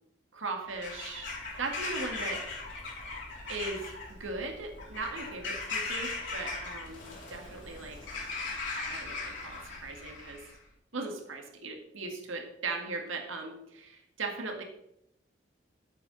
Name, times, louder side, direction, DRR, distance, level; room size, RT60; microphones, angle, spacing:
voice 1, 0.3-2.5 3.5-8.1 8.7-10.4 10.9-14.6, right 3 dB, 85° right, 2 dB, 1.8 m, -38 dB
Bird vocalization bird call bird song / Crow, 0.7-10.6, left 3 dB, 70° left, 4.0 m, -39 dB
12.0 x 8.5 x 4.0 m, 0.79 s
head